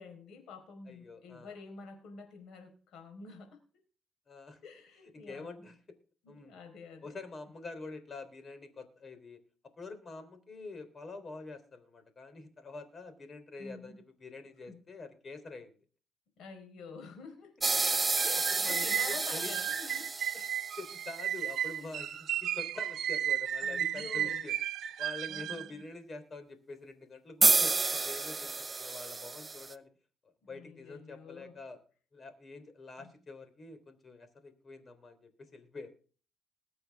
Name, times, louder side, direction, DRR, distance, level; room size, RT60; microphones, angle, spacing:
voice 1, 0.0-3.6 4.6-5.6 6.2-7.1 13.6-14.0 14.7-14.8 16.4-17.5 18.2-20.3 21.8-21.9 23.6-24.4 25.3-25.8 30.5-31.6 33.0-33.1, left 4 dB, 80° left, 5 dB, 4.6 m, -48 dB
voice 2, 0.9-1.5 4.3-4.6 5.1-5.8 6.3-6.6 7.0-9.4 9.8-15.8 17.9-19.5 20.3-20.5 20.8-24.5 25.0-29.9 30.5-31.8 32.1-35.9, left 3 dB, 40° left, 10 dB, 3.5 m, -46 dB
sound 1, 17.6-21.1 27.4-29.7, right 3 dB, 25° right, 0.8 m, -30 dB
sound 2, 17.9-25.7, right 10 dB, 70° right, 1.1 m, -34 dB
21.0 x 7.8 x 3.6 m, 0.40 s
cardioid pair, 90°, 0 cm